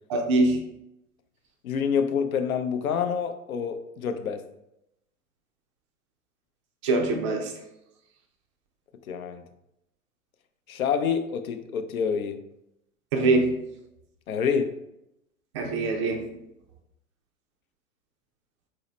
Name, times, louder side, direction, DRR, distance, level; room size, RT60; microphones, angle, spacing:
voice 1, 0.1-0.6 6.8-7.5 13.1-13.5 15.5-16.2, right 2 dB, 25° right, 0.3 m, -23 dB
voice 2, 1.6-4.5 9.1-9.4 10.7-12.4 14.3-14.8, left 6 dB, 75° left, 0.6 m, -27 dB
4.2 x 2.7 x 3.0 m
figure-of-eight pair, 105°, 43 cm